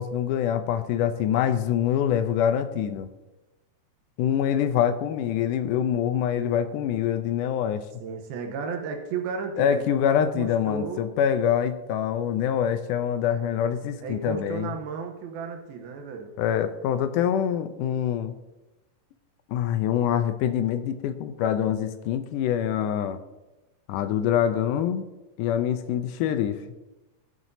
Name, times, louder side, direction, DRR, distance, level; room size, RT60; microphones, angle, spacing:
voice 1, 0.0-3.1 4.2-7.8 9.6-14.7 16.4-18.3 19.5-23.2 23.9-25.1 25.4-26.6, left 9 dB, 80° left, 9 dB, 1.9 m, -25 dB
voice 2, 8.0-9.8 10.1-11.0 14.0-16.3, right 5 dB, 90° right, 3 dB, 2.8 m, -34 dB
20.5 x 7.5 x 2.7 m, 1.1 s
omnidirectional pair, 4.2 m